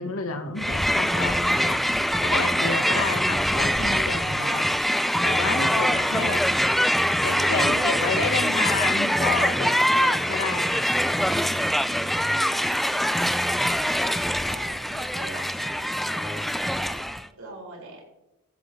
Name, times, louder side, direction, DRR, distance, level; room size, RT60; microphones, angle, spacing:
voice 1, 0.0-1.8 2.2-4.7 5.2-6.4 7.2-10.9 12.4-12.6, left 4 dB, 85° left, 6 dB, 1.2 m, -30 dB
Crowd, 0.6-17.3, equal, ahead, 0.3 m, -23 dB
voice 2, 11.3-12.6 13.9-18.1, right 2 dB, 85° right, -2 dB, 5.9 m, -44 dB
17.0 x 13.0 x 3.2 m, 0.93 s
head